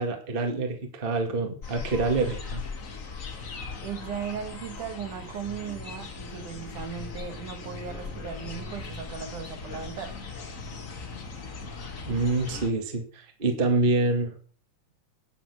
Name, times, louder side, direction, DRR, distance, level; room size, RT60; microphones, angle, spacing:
voice 1, 0.0-2.6 12.1-14.3, right 3 dB, 20° right, 1.4 m, -26 dB
sound 1, 1.6-12.7, left 4 dB, 85° left, 0.7 m, -39 dB
voice 2, 3.8-10.2, right 7 dB, 65° right, 2.6 m, -37 dB
9.4 x 9.2 x 6.0 m
omnidirectional pair, 4.1 m